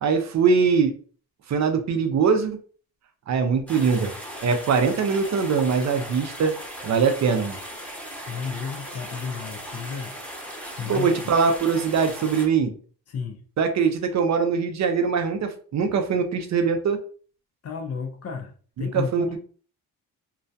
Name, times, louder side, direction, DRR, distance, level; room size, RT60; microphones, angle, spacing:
voice 1, 0.0-0.9 1.5-2.6 3.3-4.1 4.4-6.5 6.8-7.6 10.9-12.7 13.6-17.0 18.8-19.4, right 5 dB, 50° right, 6 dB, 0.5 m, -22 dB
sound 1, 3.7-12.5, equal, 5° left, 0.7 m, -38 dB
voice 2, 8.3-10.5 10.8-11.2 13.1-13.4 17.6-18.5 18.8-19.4, left 6 dB, 45° left, 5 dB, 0.5 m, -33 dB
2.3 x 2.1 x 2.6 m, 0.42 s
cardioid pair, 105°, 37 cm